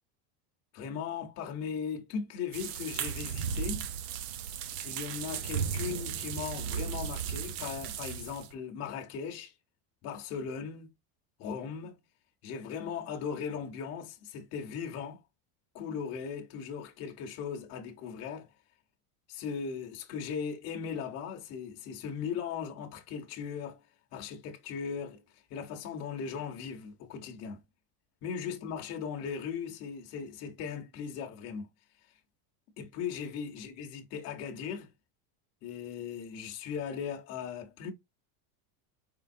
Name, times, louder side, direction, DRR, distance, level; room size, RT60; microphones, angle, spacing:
voice 1, 0.7-3.9 4.8-9.5 10.0-10.9 11.4-12.0 12.4-15.2 15.7-18.5 19.3-23.8 24.1-25.2 25.5-27.6 28.2-31.7 32.8-34.9 35.6-37.9, left 7 dB, 35° left, 0.9 m, -38 dB
sound 1, 2.5-8.5, right 8 dB, 45° right, 0.4 m, -35 dB
4.5 x 3.4 x 2.6 m
cardioid pair, 175°, 45 cm